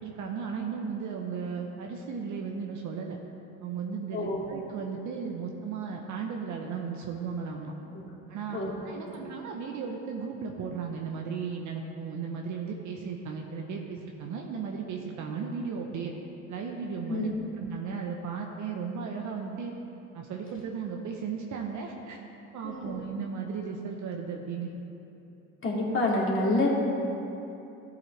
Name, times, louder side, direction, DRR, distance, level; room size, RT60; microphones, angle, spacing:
voice 1, 0.0-3.2 3.6-7.7 8.3-16.1 16.5-17.3 17.6-19.7 20.1-22.2 22.5-24.7, right 6 dB, 55° right, 1 dB, 1.0 m, -35 dB
voice 2, 4.1-4.4 7.9-8.1 8.5-9.2 17.1-17.3 22.6-23.0 25.6-26.7, left 2 dB, 35° left, -4 dB, 2.5 m, -28 dB
13.5 x 8.2 x 3.3 m, 2.9 s
supercardioid pair, 90°, 35 cm